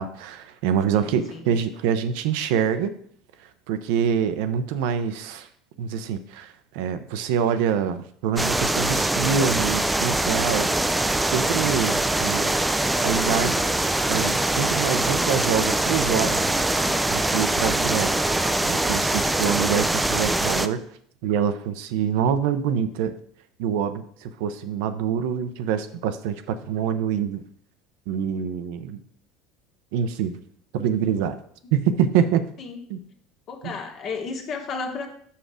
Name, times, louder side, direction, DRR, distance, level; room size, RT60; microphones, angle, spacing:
voice 1, 0.0-3.0 3.7-5.5 5.8-10.9 11.2-12.5 13.0-13.7 14.1-16.6 17.1-18.3 18.6-20.8 21.2-23.1 23.6-27.4 28.1-29.0 29.9-30.4 30.7-31.4 31.7-32.5 32.9-33.0 33.6-33.8, right 8 dB, 75° right, 10 dB, 0.7 m, -25 dB
sound 1, 8.4-20.7, right 2 dB, 10° right, 0.5 m, -23 dB
voice 2, 32.6-33.0 33.5-35.1, left 4 dB, 50° left, 3 dB, 1.6 m, -33 dB
6.1 x 5.7 x 4.9 m, 0.63 s
supercardioid pair, 95°, 0 cm